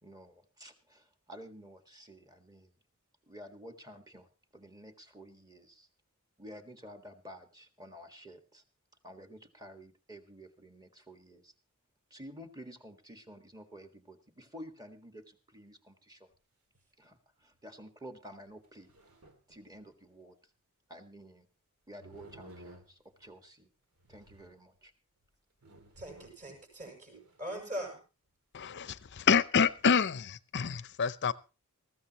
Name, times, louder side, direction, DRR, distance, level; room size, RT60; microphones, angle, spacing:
voice 1, 0.0-2.7 3.3-4.3 4.5-5.9 6.4-8.6 9.0-11.5 12.1-16.3 17.0-18.9 19.5-20.4 20.9-21.5 21.9-23.7 24.1-24.9, equal, 15° right, 1.7 m, -51 dB
sound 1, 16.3-16.4 16.7-16.8 17.6-17.7 18.5-20.0 22.0-23.3 24.0-24.8 25.2-25.3 25.6-26.6 27.0-27.5, right 1 dB, 85° right, 2.4 m, -55 dB
voice 2, 26.0-28.0, equal, 35° right, 7.0 m, -41 dB
voice 3, 28.5-31.3, left 6 dB, 55° left, 0.6 m, -28 dB
20.0 x 15.0 x 3.0 m
head